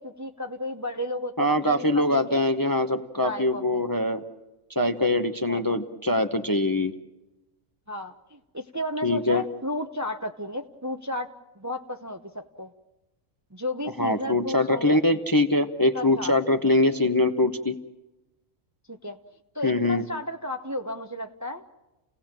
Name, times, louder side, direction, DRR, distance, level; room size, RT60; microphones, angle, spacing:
voice 1, 0.0-2.4 3.2-3.8 5.5-5.6 7.9-11.3 11.6-12.7 13.5-15.0 15.9-16.3 18.9-19.2 19.5-21.6, left 1 dB, 15° right, 6 dB, 0.7 m, -33 dB
voice 2, 1.4-4.2 4.8-6.9 9.0-9.4 14.0-17.8 19.6-20.1, left 2 dB, 20° left, 7 dB, 0.7 m, -23 dB
29.5 x 18.0 x 7.5 m, 1.1 s
omnidirectional pair, 1.3 m